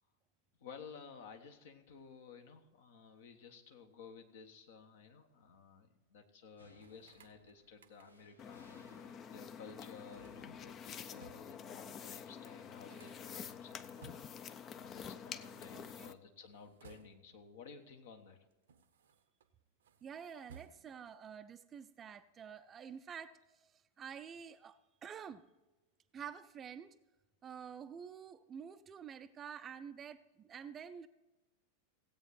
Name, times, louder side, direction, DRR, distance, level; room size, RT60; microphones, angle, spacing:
voice 1, 0.6-14.1 14.7-18.4, left 5 dB, 55° left, 6 dB, 1.3 m, -55 dB
sound 1, 6.6-17.3, equal, 85° left, 1.1 m, -68 dB
sound 2, 6.8-8.4 9.7-11.6 12.0-12.1 12.3-14.5 15.6-17.5 18.2-19.5 19.8-21.1, right 7 dB, 65° right, 0.8 m, -62 dB
sound 3, 8.4-16.1, left 7 dB, 30° left, 0.5 m, -48 dB
voice 2, 15.7-16.1 20.0-23.7 24.0-25.4 26.1-27.0 27.4-31.1, right 7 dB, 25° right, 12 dB, 0.5 m, -49 dB
16.5 x 8.6 x 4.2 m, 1.1 s
figure-of-eight pair, 90°, 0 cm